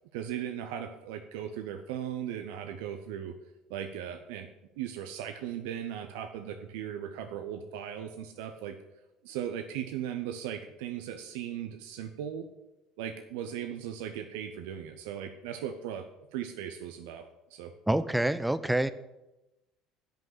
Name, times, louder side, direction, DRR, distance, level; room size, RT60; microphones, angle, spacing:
voice 1, 0.1-3.3 3.7-4.5 4.8-8.8 9.2-12.5 13.0-16.1 16.3-17.7, right 9 dB, 70° right, 7 dB, 0.6 m, -38 dB
voice 2, 17.9-18.9, right 1 dB, 5° right, 14 dB, 0.6 m, -26 dB
9.0 x 5.4 x 7.7 m, 0.98 s
figure-of-eight pair, 60°, 0 cm